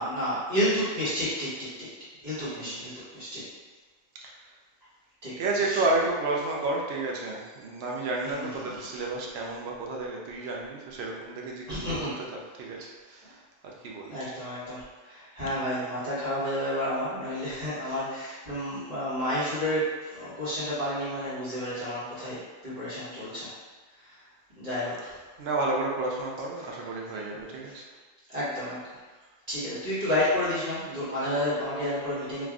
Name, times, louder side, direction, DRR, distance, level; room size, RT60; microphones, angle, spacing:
voice 1, 0.0-1.9 2.2-3.4 5.2-5.3 5.7-5.8 8.2-8.8 11.7-12.2 14.1-23.5 24.6-25.1 27.7-27.8 28.3-28.8 29.5-32.5, equal, 35° right, -12 dB, 1.4 m, -31 dB
voice 2, 2.4-2.8 5.4-12.1 12.6-14.2 25.4-27.9, right 2 dB, 70° right, -2 dB, 0.8 m, -31 dB
3.2 x 2.5 x 2.3 m, 1.3 s
omnidirectional pair, 1.2 m